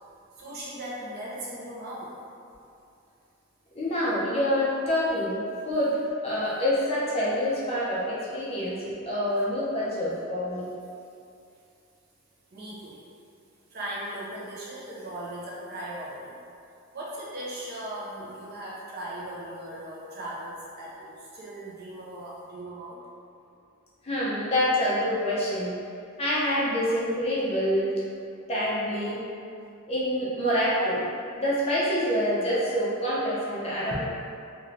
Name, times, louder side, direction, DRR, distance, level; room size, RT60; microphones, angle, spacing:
voice 1, 0.4-2.1 12.5-13.0 13.7-16.4 16.9-23.0, right 1 dB, 45° right, -7 dB, 0.6 m, -38 dB
voice 2, 3.8-10.7 24.0-25.7 26.2-28.0 28.5-29.2 29.9-31.0 31.4-34.0, equal, 25° left, -8 dB, 0.5 m, -26 dB
2.6 x 2.5 x 3.1 m, 2.5 s
head